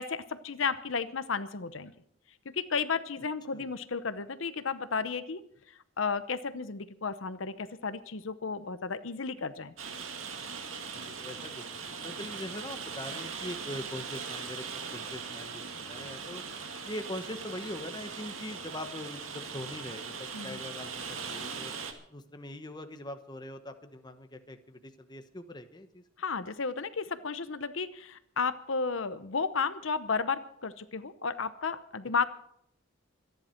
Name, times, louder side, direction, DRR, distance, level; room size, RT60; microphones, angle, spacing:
voice 1, 0.0-1.9 2.4-5.4 5.7-9.7 20.3-20.6 26.2-32.3, left 5 dB, 70° left, 12 dB, 0.8 m, -33 dB
Rain, 9.8-21.9, right 5 dB, 85° right, 2.1 m, -40 dB
voice 2, 10.9-14.6 14.9-15.6 15.9-16.4 16.8-21.8 22.1-26.0, left 1 dB, 20° left, 8 dB, 1.0 m, -42 dB
25.5 x 10.5 x 4.5 m, 0.70 s
head